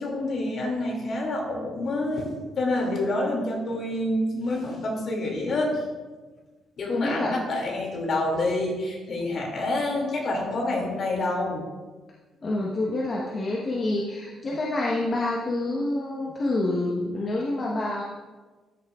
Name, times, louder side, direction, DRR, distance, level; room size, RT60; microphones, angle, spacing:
voice 1, 0.0-2.3 2.6-5.8 6.8-11.6, left 2 dB, 55° left, -1 dB, 2.4 m, -27 dB
voice 2, 6.9-7.3 12.4-18.0, left 2 dB, 40° left, -3 dB, 1.1 m, -27 dB
13.0 x 6.6 x 2.4 m, 1.3 s
cardioid pair, 90°, 0 cm